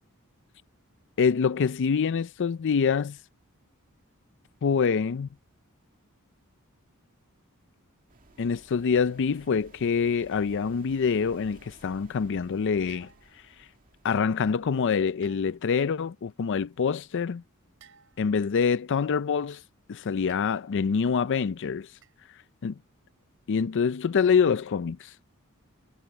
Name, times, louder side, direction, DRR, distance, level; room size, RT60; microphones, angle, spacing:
voice 1, 1.2-3.2 4.6-5.3 8.4-13.7 14.0-17.4 18.2-19.6 19.9-22.0 22.3-22.8 23.5-25.2, left 6 dB, 55° left, 0.4 m, -26 dB
sound 1, 8.1-15.7, right 2 dB, 40° right, 2.2 m, -56 dB
sound 2, 12.9-13.6 15.2-15.8 17.8-18.5 20.3-20.9 22.0-22.3, right 6 dB, 65° right, 6.1 m, -57 dB
head